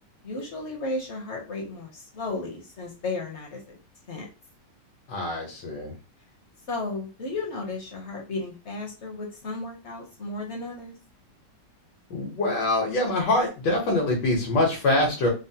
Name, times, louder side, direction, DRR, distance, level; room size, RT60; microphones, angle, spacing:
voice 1, 0.2-3.8 4.1-4.3 6.7-10.9, left 3 dB, 55° left, 0 dB, 0.8 m, -34 dB
voice 2, 5.1-5.9 12.1-15.3, left 2 dB, 80° left, -1 dB, 1.6 m, -24 dB
3.8 x 2.0 x 2.7 m, 0.31 s
omnidirectional pair, 1.9 m